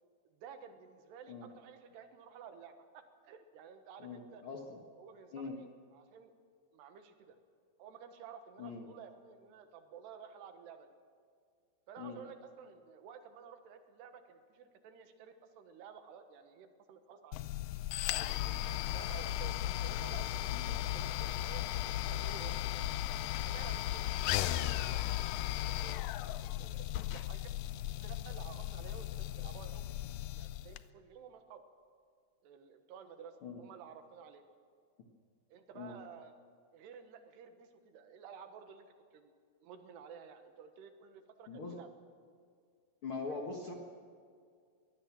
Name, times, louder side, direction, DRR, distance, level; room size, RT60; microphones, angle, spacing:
voice 1, 0.3-4.4 5.0-5.7 5.9-6.3 6.7-7.4 7.8-10.9 11.9-17.5 18.0-21.6 22.1-22.6 23.5-25.0 25.7-27.5 28.0-29.8 30.3-31.6 32.4-34.4 35.5-36.3 36.7-39.3 39.6-41.9, right 7 dB, 90° right, 7 dB, 3.5 m, -53 dB
voice 2, 4.0-4.8 5.3-5.6 8.6-8.8 12.0-12.2 20.5-20.7 24.4-24.6 33.4-33.6 35.7-35.9 41.5-41.8 43.0-43.7, left 4 dB, 55° left, 1 dB, 1.6 m, -42 dB
sound 1, 17.3-30.8, left 13 dB, 90° left, 1.9 m, -36 dB
22.5 x 17.0 x 7.5 m, 2.2 s
omnidirectional pair, 4.7 m